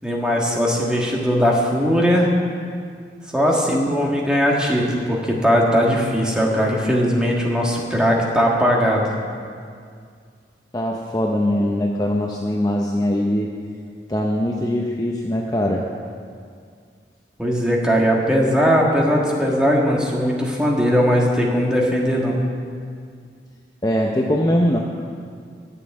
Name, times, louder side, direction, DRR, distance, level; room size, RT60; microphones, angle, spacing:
voice 1, 0.0-2.3 3.3-9.1 17.4-22.4, equal, 5° right, -2 dB, 1.6 m, -19 dB
voice 2, 3.7-4.1 10.7-13.5 14.1-15.9 23.8-24.8, left 1 dB, 20° left, 0 dB, 0.7 m, -21 dB
11.0 x 7.4 x 9.3 m, 2.2 s
head